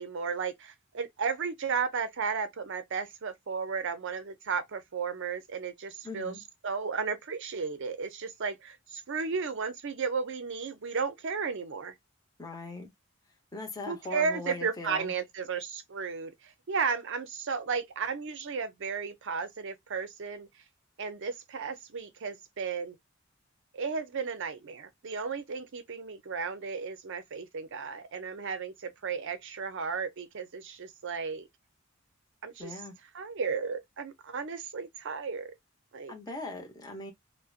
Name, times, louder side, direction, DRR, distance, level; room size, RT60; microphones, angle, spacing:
voice 1, 0.0-6.3 6.6-11.9 13.9-20.5 21.0-23.0 23.7-31.4 32.4-32.7 33.1-35.5 35.9-36.1, right 5 dB, 65° right, 0.6 m, -34 dB
voice 2, 6.0-6.4 12.4-12.9 13.5-15.1 32.6-32.9 36.1-37.1, left 2 dB, 20° left, 0.8 m, -40 dB
2.5 x 2.2 x 2.4 m
head